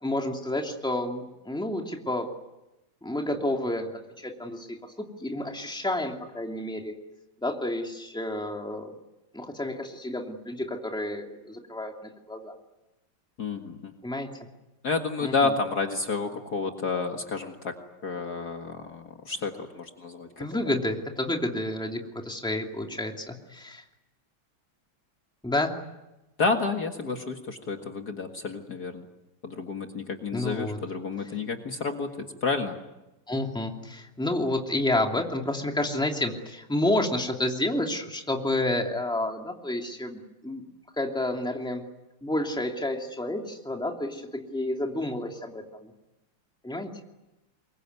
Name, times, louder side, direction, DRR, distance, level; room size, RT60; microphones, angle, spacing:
voice 1, 0.0-2.3 3.0-6.9 7.4-8.9 9.3-11.9 12.3-12.5 14.0-14.3 15.2-15.5 20.4-23.8 25.4-25.7 30.3-30.8 33.3-40.6 41.0-41.8 42.2-45.9 46.6-46.9, left 1 dB, ahead, 2 dB, 2.6 m, -30 dB
voice 2, 13.4-13.9 14.8-17.7 18.0-20.4 26.4-29.1 29.4-32.8, left 4 dB, 50° left, 4 dB, 2.2 m, -30 dB
25.0 x 22.5 x 9.6 m, 0.98 s
omnidirectional pair, 2.3 m